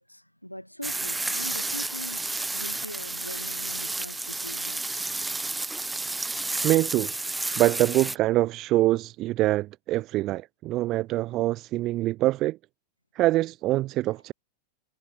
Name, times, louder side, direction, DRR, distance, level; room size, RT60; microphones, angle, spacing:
voice 1, 0.0-5.1, equal, 90° left, 4.0 m, -41 dB
sound 1, 0.8-8.2, right 2 dB, 5° right, 5.3 m, -31 dB
voice 2, 6.6-7.1 7.6-12.6 13.1-14.3, right 16 dB, 35° right, 1.7 m, -24 dB
figure-of-eight pair, 90°, 0 cm